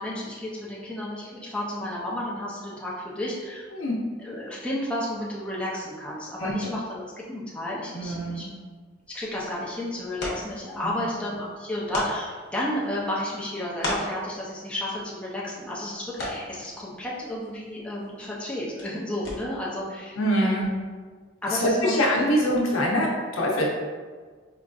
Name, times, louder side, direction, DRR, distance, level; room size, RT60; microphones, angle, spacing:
voice 1, 0.0-3.6 4.2-8.4 9.1-20.7 21.4-22.0, left 1 dB, 5° left, -6 dB, 0.4 m, -32 dB
voice 2, 6.4-6.7 7.9-8.5 10.8-11.1 20.2-20.7 21.5-23.7, equal, 90° left, -2 dB, 0.7 m, -24 dB
sound 1, 9.0-19.8, left 1 dB, 55° left, 0.8 m, -39 dB
4.6 x 2.5 x 2.3 m, 1.5 s
head